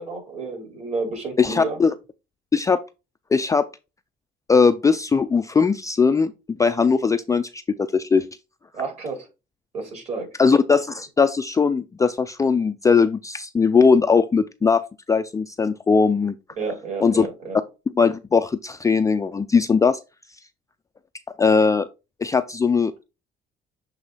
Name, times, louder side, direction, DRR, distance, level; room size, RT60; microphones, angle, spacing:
voice 1, 0.0-1.8 8.7-9.3 9.7-10.3 16.6-17.6, right 4 dB, 40° right, 4.2 m, -31 dB
voice 2, 1.4-1.9 2.5-2.8 3.3-3.6 4.5-8.3 10.4-14.8 15.1-16.3 17.0-17.3 18.0-20.0 21.4-21.9 22.2-23.0, left 5 dB, 20° left, 0.4 m, -19 dB
7.7 x 3.1 x 4.0 m
cardioid pair, 110°, 17 cm